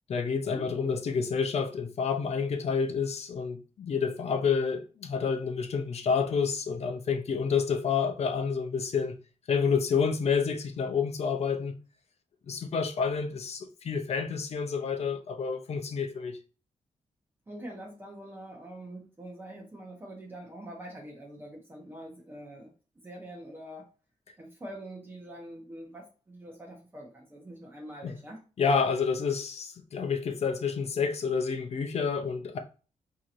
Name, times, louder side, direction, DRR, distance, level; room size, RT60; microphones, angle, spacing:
voice 1, 0.1-9.2 9.5-11.8 12.5-16.4 28.0-28.1 28.6-32.6, left 6 dB, 55° left, 0.6 m, -29 dB
voice 2, 17.5-22.7 23.0-23.9 24.4-28.4, right 1 dB, 15° right, 0.8 m, -44 dB
4.5 x 2.9 x 2.5 m
wide cardioid pair, 165°, 13 cm